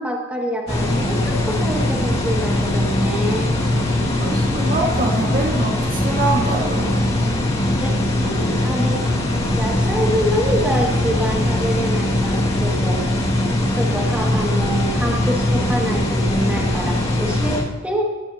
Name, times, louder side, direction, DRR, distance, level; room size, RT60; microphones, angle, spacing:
voice 1, 0.0-3.5 7.8-9.0 9.6-13.0 13.7-17.6 17.8-18.1, equal, 5° right, -2 dB, 2.0 m, -26 dB
sound 1, 0.7-17.6, left 1 dB, 30° left, 2.1 m, -20 dB
voice 2, 4.1-7.1, right 2 dB, 45° right, 0 dB, 1.7 m, -24 dB
17.5 x 14.0 x 2.9 m, 1.3 s
head